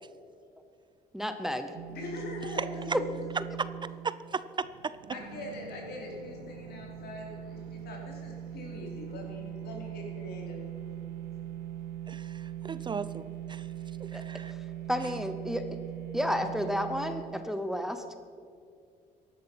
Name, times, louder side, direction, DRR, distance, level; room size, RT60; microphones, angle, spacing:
voice 1, 1.1-1.7 2.9-3.0 14.1-14.2 14.9-15.8 16.1-18.2, equal, ahead, 8 dB, 0.9 m, -31 dB
sound 1, 1.7-17.2, right 11 dB, 85° right, 0.9 m, -41 dB
voice 2, 1.9-2.8 5.1-10.6 11.2-11.3, left 2 dB, 70° left, -1 dB, 4.6 m, -42 dB
voice 3, 2.6-3.0 3.8-4.9 12.1-13.7 14.0-14.5 15.0-15.1, right 5 dB, 25° right, 15 dB, 0.4 m, -36 dB
15.5 x 11.5 x 5.8 m, 2.3 s
cardioid pair, 110°, 17 cm